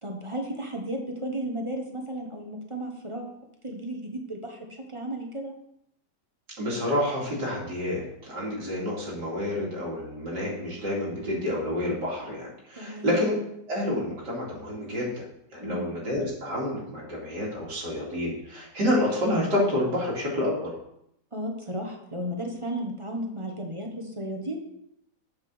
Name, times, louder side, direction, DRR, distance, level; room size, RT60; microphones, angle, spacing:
voice 1, 0.0-3.4 3.6-5.5 12.8-13.1 15.6-15.9 21.3-24.6, right 1 dB, 20° right, 2 dB, 1.0 m, -34 dB
voice 2, 6.6-13.3 13.7-15.2 15.5-20.7, left 1 dB, 80° right, -5 dB, 3.3 m, -28 dB
7.4 x 5.6 x 6.1 m, 0.77 s
omnidirectional pair, 1.8 m